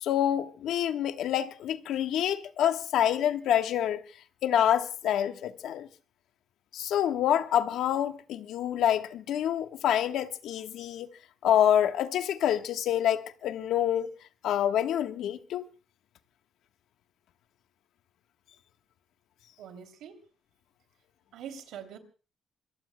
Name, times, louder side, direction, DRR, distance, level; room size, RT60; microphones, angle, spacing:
voice 1, 0.0-4.0 4.4-5.9 6.7-11.1 11.4-14.1 14.4-15.6, left 10 dB, 80° left, 1.3 m, -27 dB
voice 2, 19.6-20.2 21.3-22.0, right 8 dB, 85° right, 2.9 m, -43 dB
26.5 x 23.0 x 2.2 m
cardioid pair, 90°, 0 cm